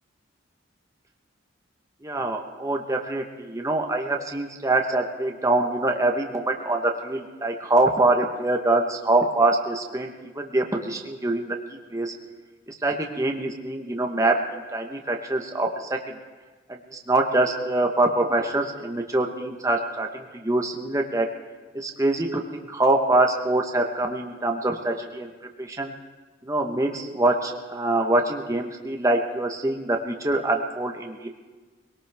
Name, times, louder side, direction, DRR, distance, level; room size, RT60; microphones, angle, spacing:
voice 1, 2.0-11.6 11.9-12.1 12.7-16.0 16.7-21.3 21.7-25.3 25.6-25.9 26.4-31.3, right 2 dB, 15° right, 2 dB, 1.0 m, -24 dB
22.0 x 18.0 x 3.5 m, 1.3 s
head